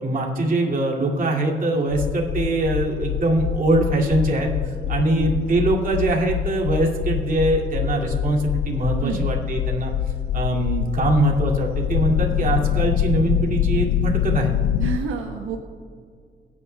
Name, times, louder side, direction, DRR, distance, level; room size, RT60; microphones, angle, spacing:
voice 1, 0.0-9.9 10.3-14.6, right 2 dB, 45° right, -1 dB, 2.5 m, -22 dB
sound 1, 1.9-15.0, left 11 dB, 75° left, 0.4 m, -25 dB
voice 2, 5.0-5.4 9.0-9.3 14.8-15.6, right 6 dB, 85° right, 2 dB, 1.2 m, -29 dB
24.0 x 9.9 x 2.3 m, 2.2 s
cardioid pair, 90°, 20 cm